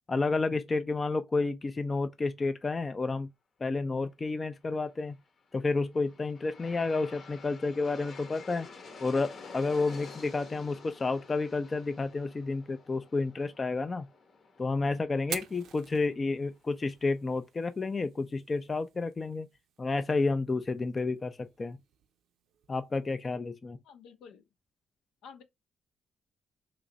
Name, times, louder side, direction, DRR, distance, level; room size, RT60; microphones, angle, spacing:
voice 1, 0.1-3.3 3.6-5.2 5.5-8.7 9.0-14.1 14.6-19.5 19.8-21.8 22.7-23.8, left 3 dB, 30° left, 0.4 m, -30 dB
Aircraft, 5.5-16.6, left 4 dB, 50° left, 0.9 m, -50 dB
Fire, 15.2-23.1, right 8 dB, 80° right, 0.5 m, -48 dB
voice 2, 23.8-24.4 25.2-25.4, left 6 dB, 85° left, 0.7 m, -50 dB
3.1 x 2.4 x 3.8 m
cardioid pair, 90°, 0 cm